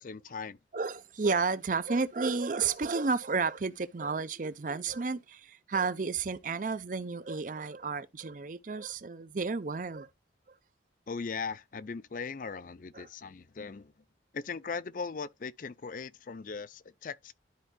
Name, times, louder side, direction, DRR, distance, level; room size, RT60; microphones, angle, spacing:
voice 1, 0.0-0.6 11.1-13.9 14.3-17.3, left 5 dB, 50° left, 0.4 m, -39 dB
voice 2, 0.7-10.1 12.9-13.1, right 4 dB, 50° right, 0.6 m, -32 dB
12.5 x 4.5 x 2.2 m
head